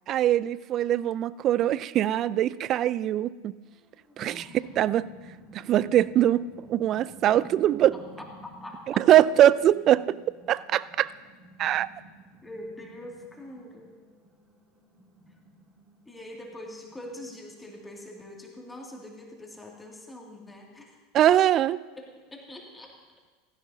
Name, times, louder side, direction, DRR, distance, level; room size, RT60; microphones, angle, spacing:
voice 1, 0.1-3.5 4.2-4.5 4.8-5.1 5.5-8.0 9.0-10.2 10.5-11.1 11.6-11.9 21.1-21.8, right 12 dB, 45° right, 19 dB, 0.3 m, -22 dB
sound 1, 3.7-18.0, right 1 dB, 20° right, 2.6 m, -53 dB
voice 2, 4.3-4.7 8.2-8.8 12.4-13.9 16.1-21.0 22.0-23.0, left 1 dB, 10° left, -1 dB, 2.4 m, -43 dB
16.0 x 15.5 x 2.8 m, 1.4 s
hypercardioid pair, 85°, 0 cm